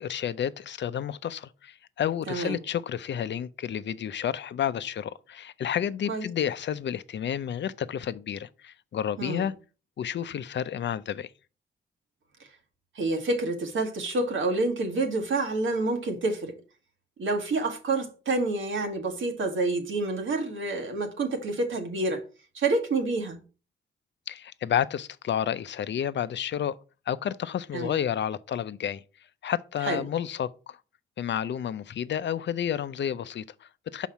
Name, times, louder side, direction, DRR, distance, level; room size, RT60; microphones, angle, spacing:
voice 1, 0.0-9.5 10.0-11.3 24.3-26.8 27.1-29.0 29.4-30.8 31.2-34.1, left 9 dB, 65° left, 0.5 m, -30 dB
voice 2, 2.3-2.6 6.1-6.2 9.2-9.5 12.9-16.5 17.2-22.2 22.5-23.4 27.7-28.0 29.9-30.0, right 2 dB, 75° right, 1.5 m, -28 dB
5.6 x 4.1 x 5.9 m
cardioid pair, 50°, 20 cm